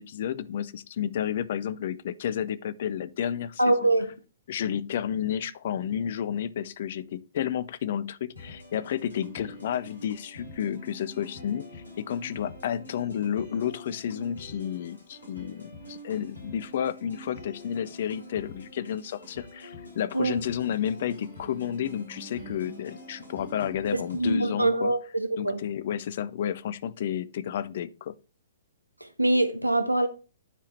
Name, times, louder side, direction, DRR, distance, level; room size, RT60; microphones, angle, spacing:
voice 1, 0.0-3.7 4.5-24.9 25.4-28.1, left 9 dB, 50° left, 0.5 m, -31 dB
voice 2, 3.6-4.1 20.1-20.4 23.9-25.6 29.0-30.1, right 2 dB, 90° right, 1.1 m, -24 dB
sound 1, 8.4-24.4, left 1 dB, 75° left, 3.7 m, -46 dB
9.8 x 4.9 x 4.4 m
figure-of-eight pair, 115°, 0 cm